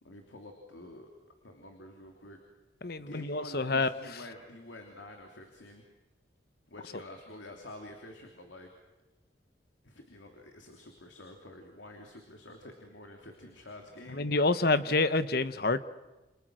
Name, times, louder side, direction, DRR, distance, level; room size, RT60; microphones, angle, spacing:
voice 1, 0.0-1.1 1.4-2.4 3.1-5.9 6.7-8.7 9.8-14.3 14.6-14.9, left 1 dB, 90° left, 3 dB, 3.1 m, -48 dB
voice 2, 2.8-3.9 14.1-15.8, left 3 dB, 55° left, 13 dB, 1.1 m, -27 dB
29.0 x 28.5 x 6.3 m, 1.1 s
head